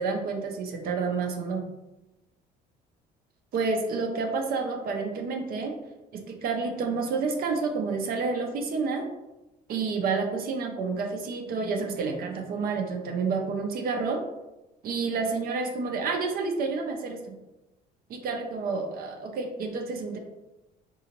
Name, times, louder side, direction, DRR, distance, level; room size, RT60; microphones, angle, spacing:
voice 1, 0.0-1.6 3.5-5.7 6.1-9.1 9.7-14.2 14.8-17.3 18.1-20.2, right 4 dB, 60° right, 3 dB, 0.6 m, -29 dB
3.8 x 2.7 x 2.9 m, 1.0 s
cardioid pair, 110°, 17 cm